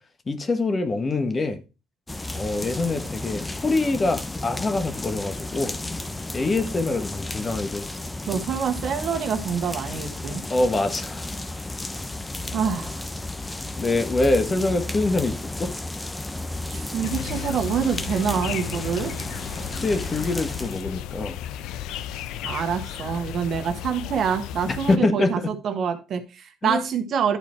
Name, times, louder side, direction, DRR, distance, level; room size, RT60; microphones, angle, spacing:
voice 1, 0.3-1.6 2.3-5.8 6.3-8.0 10.5-11.3 13.8-15.7 19.7-21.4 24.7-25.5 26.6-26.8, left 2 dB, 30° left, 1.4 m, -25 dB
sound 1, 2.1-20.8, left 2 dB, 15° left, 0.9 m, -33 dB
voice 2, 8.3-10.4 12.5-13.0 16.7-19.1 22.4-27.4, right 7 dB, 60° right, 1.4 m, -26 dB
sound 2, 17.0-25.0, left 10 dB, 80° left, 0.6 m, -34 dB
11.0 x 4.4 x 4.4 m
cardioid pair, 85°, 0 cm